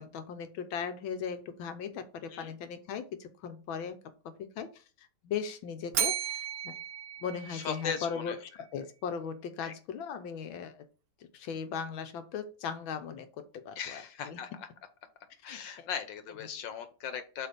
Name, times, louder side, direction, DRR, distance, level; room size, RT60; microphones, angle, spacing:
voice 1, 0.0-4.0 4.2-6.7 7.2-8.4 8.7-10.8 11.2-13.3 13.5-14.4 15.5-15.9, left 7 dB, 90° left, 9 dB, 1.7 m, -38 dB
Bell, 5.9-8.2, right 9 dB, 60° right, 1.0 m, -34 dB
voice 2, 7.5-8.4 9.6-9.7 13.8-14.7 15.4-17.5, left 7 dB, 70° left, 9 dB, 1.6 m, -38 dB
7.8 x 3.3 x 5.3 m, 0.36 s
omnidirectional pair, 2.1 m